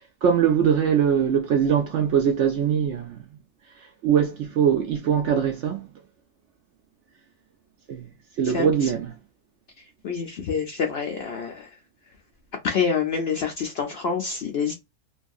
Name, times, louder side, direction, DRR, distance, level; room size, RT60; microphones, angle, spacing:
voice 1, 0.2-3.2 4.0-5.9 7.9-8.0 8.4-9.1, right 8 dB, 65° right, 0.7 m, -22 dB
voice 2, 10.0-11.7 12.6-14.7, left 6 dB, 65° left, 0.6 m, -26 dB
2.6 x 2.6 x 2.3 m
omnidirectional pair, 1.6 m